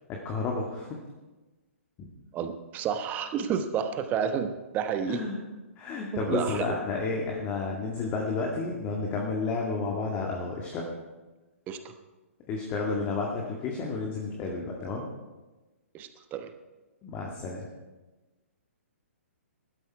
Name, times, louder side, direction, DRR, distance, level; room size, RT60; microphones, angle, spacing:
voice 1, 0.2-0.9 5.0-5.4 5.8-10.9 12.5-15.1 17.0-17.7, left 4 dB, 25° left, -1 dB, 2.1 m, -31 dB
voice 2, 2.3-5.3 6.3-6.8 11.7-11.9 15.9-16.5, right 7 dB, 20° right, 8 dB, 1.1 m, -30 dB
15.5 x 12.5 x 4.8 m, 1.2 s
figure-of-eight pair, 125°, 7 cm